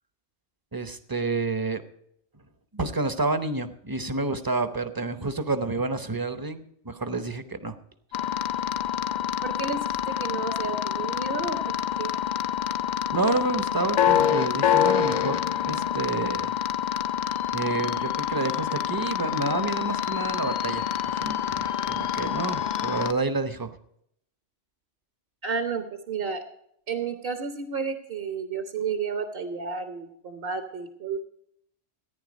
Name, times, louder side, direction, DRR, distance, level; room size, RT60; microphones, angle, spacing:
voice 1, 0.7-1.8 2.7-7.8 13.1-16.8 17.5-23.8, right 3 dB, 20° right, 11 dB, 0.7 m, -29 dB
sound 1, 8.1-23.1, left 10 dB, 55° left, 0.5 m, -27 dB
voice 2, 9.4-11.6 12.0-12.1 25.4-26.4 26.9-31.2, right 5 dB, 55° right, 8 dB, 1.2 m, -31 dB
14.5 x 9.9 x 5.2 m, 0.72 s
omnidirectional pair, 1.2 m